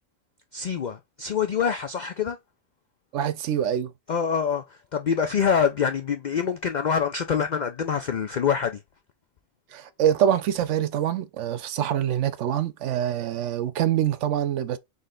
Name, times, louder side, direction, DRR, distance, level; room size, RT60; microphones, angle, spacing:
voice 1, 0.5-2.4 4.1-8.8, left 7 dB, 90° left, 0.4 m, -25 dB
voice 2, 3.1-3.9 9.7-14.8, right 10 dB, 70° right, 0.8 m, -25 dB
3.9 x 3.2 x 3.7 m
omnidirectional pair, 1.4 m